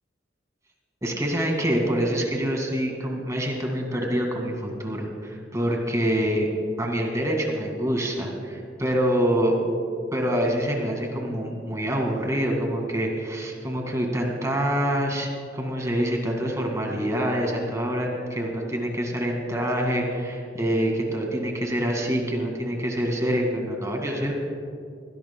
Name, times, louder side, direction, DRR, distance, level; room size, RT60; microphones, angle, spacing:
voice 1, 1.0-6.5 6.8-9.6 10.1-24.3, equal, 15° right, 1 dB, 1.9 m, -26 dB
22.0 x 17.0 x 2.2 m, 2.3 s
head